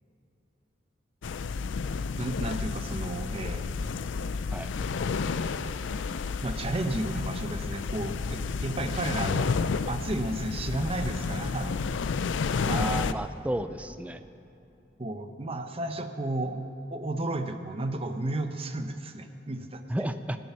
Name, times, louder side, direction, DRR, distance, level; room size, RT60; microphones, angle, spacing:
sound 1, 1.2-13.1, left 5 dB, 85° left, 0.4 m, -31 dB
voice 1, 2.2-3.7 6.4-9.5 9.8-11.7 12.7-13.2 15.0-19.8, right 1 dB, 30° right, 7 dB, 0.8 m, -33 dB
voice 2, 12.6-14.2 19.9-20.4, right 1 dB, 10° right, 10 dB, 0.5 m, -32 dB
17.0 x 9.3 x 5.8 m, 2.9 s
head